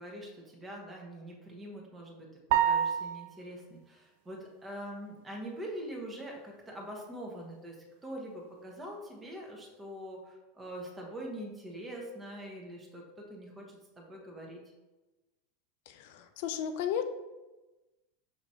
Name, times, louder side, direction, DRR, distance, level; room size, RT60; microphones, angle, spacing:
voice 1, 0.0-7.8 8.0-14.6, right 1 dB, 20° right, 0 dB, 1.2 m, -44 dB
sound 1, 2.5-3.6, right 9 dB, 60° right, 0.4 m, -28 dB
voice 2, 15.9-17.0, left 9 dB, 60° left, 9 dB, 0.4 m, -34 dB
6.3 x 2.9 x 2.8 m, 1.1 s
figure-of-eight pair, 85°, 0 cm